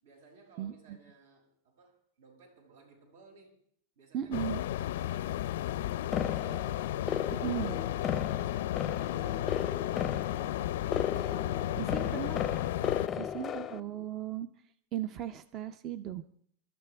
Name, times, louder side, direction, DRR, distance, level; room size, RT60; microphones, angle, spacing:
voice 1, 0.0-3.6 3.9-6.7 7.9-11.0 11.7-12.1 13.0-13.7, right 3 dB, 80° right, 3 dB, 6.7 m, -60 dB
voice 2, 4.1-4.6 7.3-7.8 11.8-12.4 13.2-14.5 14.9-16.2, right 10 dB, 30° right, 12 dB, 0.6 m, -36 dB
Oregon Coast Ocean, 4.3-13.1, left 13 dB, 75° left, 0.5 m, -33 dB
sound 1, 6.1-13.8, left 8 dB, 15° left, 0.6 m, -36 dB
29.0 x 13.0 x 3.4 m, 0.66 s
supercardioid pair, 175°, 0 cm